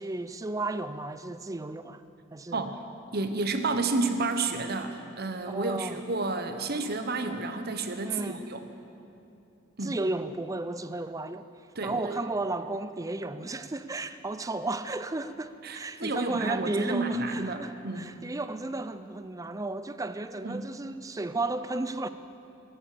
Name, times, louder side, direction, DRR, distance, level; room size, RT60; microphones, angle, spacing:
voice 1, 0.0-2.0 2.3-2.7 5.5-6.0 8.0-8.4 9.8-11.5 11.8-22.1, right 2 dB, 15° right, 0.4 m, -33 dB
voice 2, 3.1-8.6 9.8-10.0 11.8-12.2 15.6-18.1 20.4-20.7, right 3 dB, 50° right, 1.1 m, -31 dB
23.0 x 8.7 x 6.8 m
head